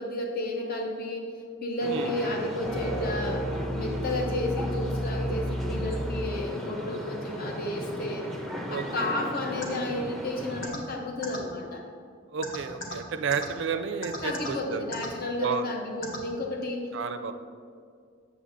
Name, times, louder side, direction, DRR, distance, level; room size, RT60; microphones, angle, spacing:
voice 1, 0.0-1.3 1.6-3.5 3.7-8.3 8.7-11.8 14.2-16.9 17.2-17.3, left 1 dB, 50° left, 1 dB, 0.6 m, -32 dB
sound 1, 1.8-10.7, equal, ahead, 0.5 m, -36 dB
sound 2, 2.6-6.5, equal, 20° left, 1.6 m, -32 dB
voice 2, 8.7-9.1 12.3-14.8 15.4-15.7 16.9-17.3, right 6 dB, 65° right, 8 dB, 0.4 m, -31 dB
sound 3, 9.6-9.7 10.6-10.8 11.2-11.4 12.4-12.9 13.3-13.4 14.0-14.5 14.9-15.1 16.0-16.2, left 2 dB, 70° left, 1.1 m, -35 dB
8.3 x 7.0 x 2.5 m, 2.2 s
head